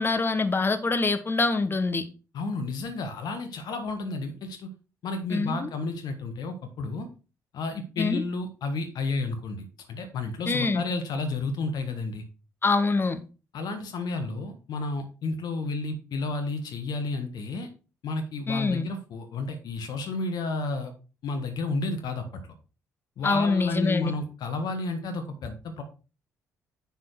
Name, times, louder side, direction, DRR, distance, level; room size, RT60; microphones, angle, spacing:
voice 1, 0.0-2.0 5.3-5.7 8.0-8.2 10.5-10.8 12.6-13.2 18.5-18.9 23.2-24.1, left 3 dB, 25° left, 8 dB, 1.2 m, -25 dB
voice 2, 2.3-4.7 5.0-7.1 7.5-12.2 13.5-17.7 18.0-20.9 21.2-22.5 23.2-25.8, left 3 dB, 50° left, 7 dB, 1.5 m, -31 dB
10.5 x 4.2 x 4.7 m, 0.33 s
figure-of-eight pair, 45°, 9 cm